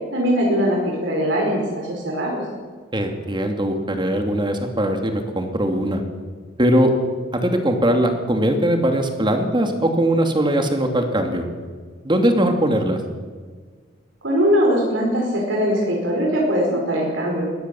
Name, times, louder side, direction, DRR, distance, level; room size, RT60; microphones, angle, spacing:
voice 1, 0.1-2.4 14.2-17.5, equal, 75° right, -2 dB, 5.0 m, -21 dB
voice 2, 2.9-6.0 6.6-6.9 7.3-11.4 12.0-13.0, right 1 dB, 25° right, 5 dB, 2.7 m, -20 dB
21.5 x 17.0 x 7.8 m, 1.5 s
head